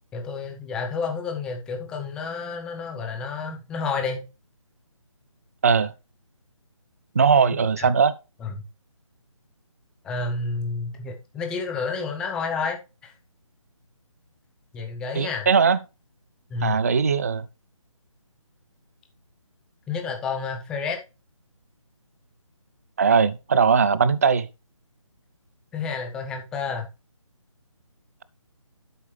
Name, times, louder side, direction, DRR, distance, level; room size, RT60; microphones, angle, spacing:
voice 1, 0.1-4.2 7.8-7.9 8.4-8.5 10.0-13.1 14.7-15.5 16.5-16.8 19.9-21.0 25.7-26.9, left 4 dB, 5° left, 0.7 m, -30 dB
voice 2, 5.6-5.9 7.2-8.1 15.1-15.8 16.6-17.5 23.0-24.5, right 5 dB, 30° right, 0.4 m, -19 dB
12.0 x 5.2 x 3.2 m
figure-of-eight pair, 165°, 17 cm